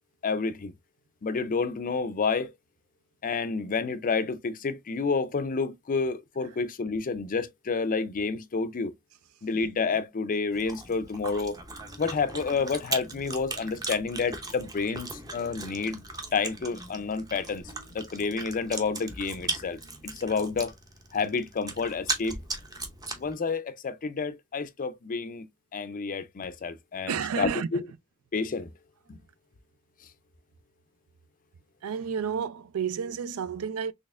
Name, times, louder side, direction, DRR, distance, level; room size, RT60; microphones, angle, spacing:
voice 1, 0.2-0.7 1.2-2.5 3.2-8.9 9.4-11.6 12.0-16.0 16.3-17.6 17.9-20.7 21.1-22.4 23.2-25.5 25.7-27.9 28.3-28.7 29.1-29.2, left 4 dB, 40° left, 0.5 m, -29 dB
Chewing mastication, 10.5-23.3, right 2 dB, 15° right, 0.7 m, -38 dB
voice 2, 27.1-27.7 31.8-33.9, right 7 dB, 70° right, 0.4 m, -31 dB
4.1 x 3.1 x 2.4 m
head